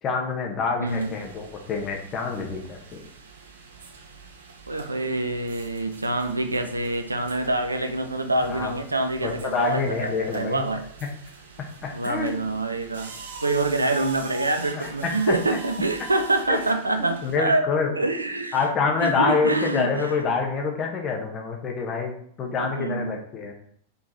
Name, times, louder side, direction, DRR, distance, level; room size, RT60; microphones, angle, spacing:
voice 1, 0.0-3.0 8.5-8.7 9.2-10.7 11.8-12.3 14.7-15.4 16.5-16.6 17.0-17.9 18.5-22.1 22.4-23.5, left 5 dB, 30° left, 1 dB, 1.5 m, -26 dB
voice 2, 0.8-1.2 4.7-10.9 11.9-13.1 13.4-17.7 17.9-18.6 19.0-20.2 22.6-23.2, right 2 dB, 80° right, 7 dB, 0.6 m, -26 dB
sound 1, 0.9-17.4, right 4 dB, 65° right, 1.0 m, -43 dB
5.5 x 4.3 x 4.3 m, 0.63 s
figure-of-eight pair, 90°, 0 cm